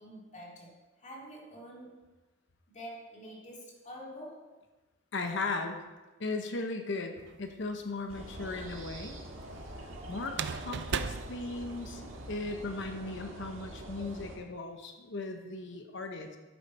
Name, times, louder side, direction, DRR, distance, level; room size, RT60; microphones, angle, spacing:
voice 1, 0.0-2.1 2.7-4.6, equal, 40° left, -3 dB, 2.5 m, -47 dB
voice 2, 5.1-5.8 6.2-9.2 10.1-12.0 12.3-16.4, left 3 dB, 65° left, 5 dB, 1.0 m, -37 dB
sound 1, 7.2-7.8 10.3-12.3, right 6 dB, 60° right, 0.5 m, -37 dB
sound 2, 8.1-14.4, right 1 dB, 80° right, 1.7 m, -45 dB
11.0 x 8.9 x 4.3 m, 1.2 s
head